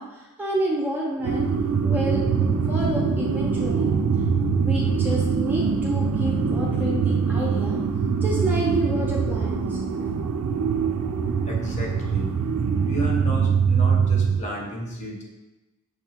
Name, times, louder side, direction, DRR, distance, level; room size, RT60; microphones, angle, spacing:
voice 1, 0.0-1.5 1.8-2.2 2.7-3.9 4.6-7.8 8.2-10.1, equal, 10° right, -4 dB, 0.5 m, -29 dB
sound 1, 1.2-14.4, right 6 dB, 80° right, 0.3 m, -23 dB
voice 2, 11.5-12.3 12.8-15.2, right 1 dB, 35° left, -1 dB, 0.8 m, -32 dB
6.5 x 2.3 x 2.8 m, 1.1 s
head